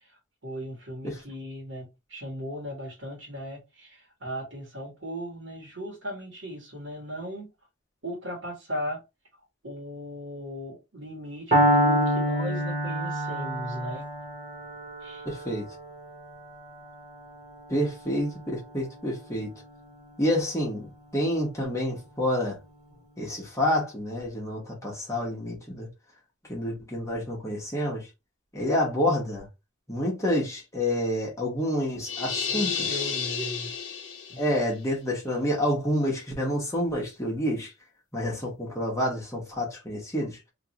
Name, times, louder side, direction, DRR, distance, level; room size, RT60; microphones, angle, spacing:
voice 1, 0.0-7.5 8.0-9.0 9.6-14.1 15.0-15.2 32.5-33.7 34.3-34.5, equal, 75° right, 1.3 m, -37 dB
Piano, 11.5-19.4, equal, 35° right, 1.3 m, -28 dB
voice 2, 15.2-15.7 17.7-19.5 20.2-22.6 23.2-25.9 26.5-28.1 28.5-29.5 29.9-32.9 34.4-37.7 38.1-40.4, left 1 dB, 15° left, 1.2 m, -28 dB
sound 1, 32.0-34.6, left 6 dB, 65° left, 0.8 m, -31 dB
3.0 x 2.6 x 2.9 m
head